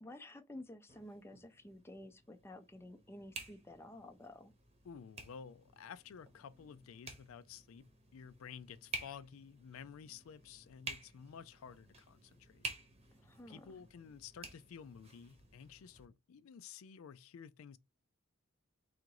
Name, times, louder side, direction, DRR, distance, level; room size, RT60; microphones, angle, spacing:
voice 1, 0.0-4.5 13.2-13.8, left 1 dB, 10° left, 0.4 m, -52 dB
sound 1, 0.9-16.1, right 3 dB, 30° right, 0.9 m, -51 dB
voice 2, 4.8-12.6 13.5-17.8, left 7 dB, 85° left, 0.4 m, -52 dB
3.8 x 2.5 x 4.6 m
head